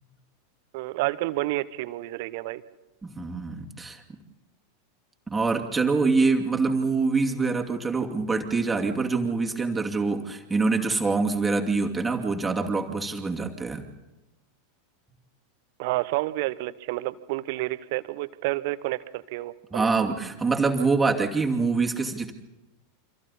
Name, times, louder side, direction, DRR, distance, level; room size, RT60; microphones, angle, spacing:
voice 1, 0.7-2.6 15.8-19.9, right 19 dB, 55° right, 15 dB, 1.0 m, -30 dB
voice 2, 3.0-4.0 5.3-13.8 19.7-22.3, right 4 dB, 10° right, 2 dB, 2.6 m, -25 dB
29.5 x 26.0 x 4.2 m, 1.0 s
figure-of-eight pair, 85°, 0 cm